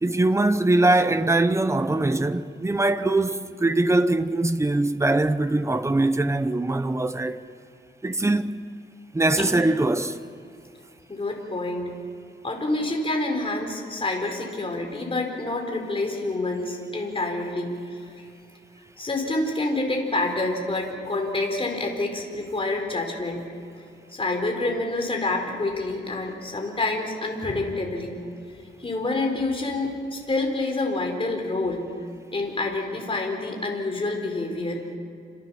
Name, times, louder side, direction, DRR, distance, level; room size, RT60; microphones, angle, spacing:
voice 1, 0.0-7.4 8.0-8.4 9.1-10.2, right 2 dB, 15° right, 0.9 m, -22 dB
voice 2, 11.1-11.9 12.4-17.7 18.2-18.3 19.0-23.4 24.1-28.2 28.8-31.9 32.3-35.0, left 2 dB, 25° left, 4.3 m, -27 dB
28.0 x 26.0 x 7.1 m
wide cardioid pair, 170°, 20 cm